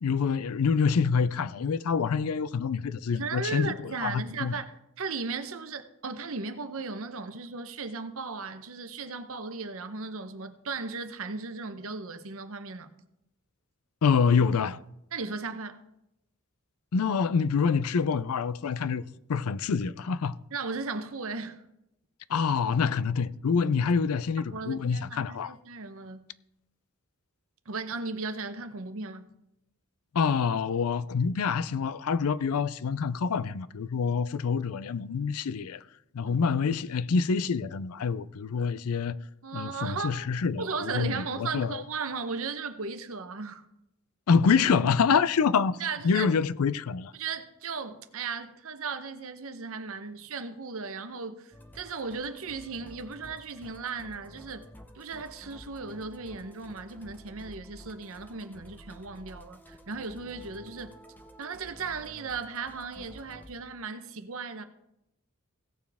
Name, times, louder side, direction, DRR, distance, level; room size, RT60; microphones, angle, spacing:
voice 1, 0.0-4.6 14.0-14.8 16.9-20.4 22.3-25.5 30.1-35.8 36.1-39.2 39.5-41.8 44.3-47.1, left 5 dB, 75° left, 0.4 m, -26 dB
voice 2, 3.2-4.7 5.0-12.9 15.1-15.8 20.5-21.6 24.5-26.2 27.7-29.3 36.2-36.4 39.4-40.3 40.6-43.7 45.8-46.3 47.2-54.7 54.9-60.9 61.4-64.6, right 4 dB, 65° right, 0.9 m, -36 dB
Musical instrument, 51.5-63.5, equal, 10° left, 0.8 m, -51 dB
17.0 x 7.0 x 3.5 m
head